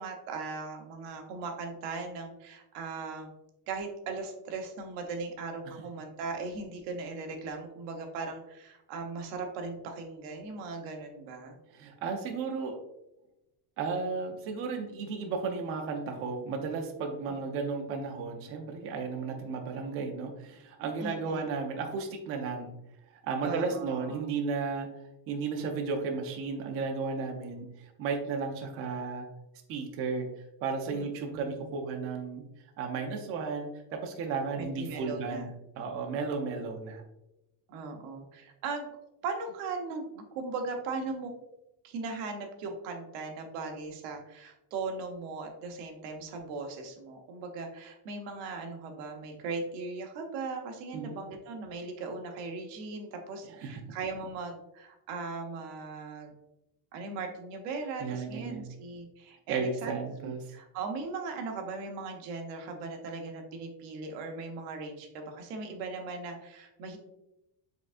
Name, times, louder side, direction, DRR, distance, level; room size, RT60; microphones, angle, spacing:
voice 1, 0.0-3.3 3.7-11.6 17.3-17.5 21.0-21.5 23.4-24.2 30.9-31.6 34.6-35.5 37.7-38.9 39.2-41.3 41.8-56.3 56.9-60.0 60.2-67.0, right 4 dB, 80° right, 4 dB, 1.1 m, -38 dB
voice 2, 11.7-12.8 13.8-22.7 23.2-24.9 25.3-29.3 29.7-32.5 32.8-35.5 35.8-37.0 50.9-51.2 53.6-53.7 58.0-58.7 59.5-60.5, right 4 dB, 30° right, 4 dB, 0.5 m, -34 dB
5.0 x 3.6 x 2.5 m, 0.89 s
cardioid pair, 170°, 48 cm